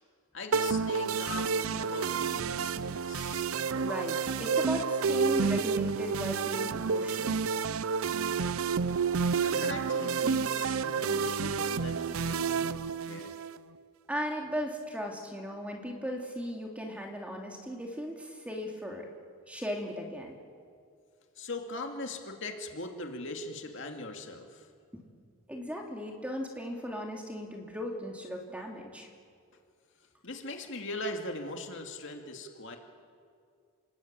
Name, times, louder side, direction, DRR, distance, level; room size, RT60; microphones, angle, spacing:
voice 1, 0.3-3.5 9.4-13.4 21.4-24.7 30.2-32.8, left 2 dB, 55° left, 3 dB, 2.5 m, -40 dB
sound 1, 0.5-13.6, right 5 dB, 70° right, 0.6 m, -30 dB
voice 2, 3.7-7.4 14.1-19.1 19.5-20.4 25.5-29.1, equal, 5° right, 1 dB, 2.7 m, -37 dB
28.0 x 21.0 x 8.9 m, 2.3 s
head